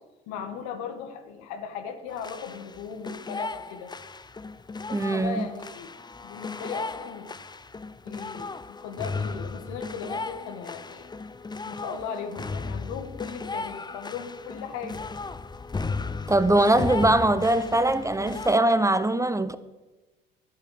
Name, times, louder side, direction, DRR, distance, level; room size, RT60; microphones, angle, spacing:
voice 1, 0.3-3.9 4.9-5.9 6.2-7.4 8.0-11.1 11.6-15.1, left 6 dB, 65° left, 2.0 m, -37 dB
sound 1, 2.1-18.6, left 3 dB, 15° left, 0.7 m, -36 dB
voice 2, 4.9-5.4 16.3-19.6, right 1 dB, 10° right, 1.0 m, -22 dB
12.0 x 11.0 x 7.9 m
hypercardioid pair, 65°, 29 cm